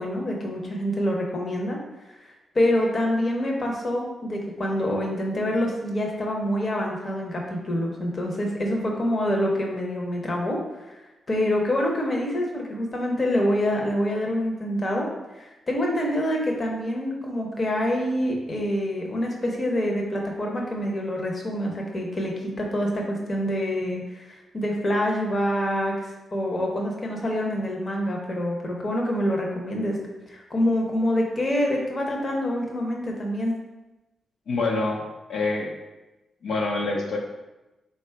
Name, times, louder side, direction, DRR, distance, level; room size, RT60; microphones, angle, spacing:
voice 1, 0.0-1.8 2.5-10.6 11.3-15.1 15.3-22.3 22.6-30.0 30.3-33.5, left 1 dB, 35° left, -1 dB, 0.7 m, -26 dB
voice 2, 34.5-35.0 35.3-35.7 36.4-37.2, left 3 dB, 75° left, -1 dB, 0.6 m, -26 dB
3.8 x 2.3 x 4.4 m, 1.0 s
wide cardioid pair, 120°, 0 cm